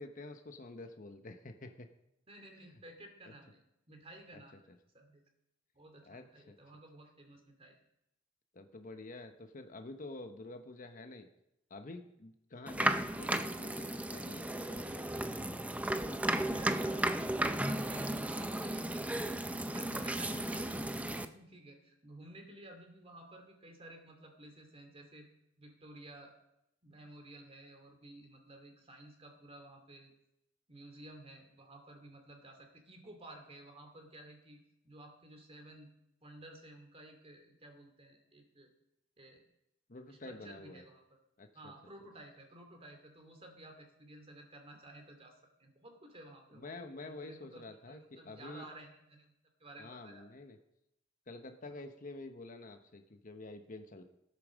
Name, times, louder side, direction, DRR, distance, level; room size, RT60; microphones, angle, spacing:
voice 1, 0.0-1.9 2.6-2.8 4.3-4.4 4.7-4.8 6.1-6.5 8.5-11.3 11.7-15.1 39.9-40.8 41.4-41.7 46.5-48.7 49.8-50.6 51.3-54.0, left 2 dB, 45° left, 7 dB, 0.9 m, -48 dB
voice 2, 2.3-4.6 4.9-5.2 5.7-7.8 14.8-15.4 16.3-19.3 19.7-25.3 25.6-26.3 26.8-30.1 30.7-35.9 36.2-38.7 39.2-39.4 40.1-41.0 41.5-50.3 51.7-51.8, right 1 dB, 30° right, 4 dB, 2.5 m, -54 dB
sound 1, 12.7-21.3, right 1 dB, 5° right, 0.5 m, -34 dB
15.5 x 8.6 x 6.3 m, 0.85 s
head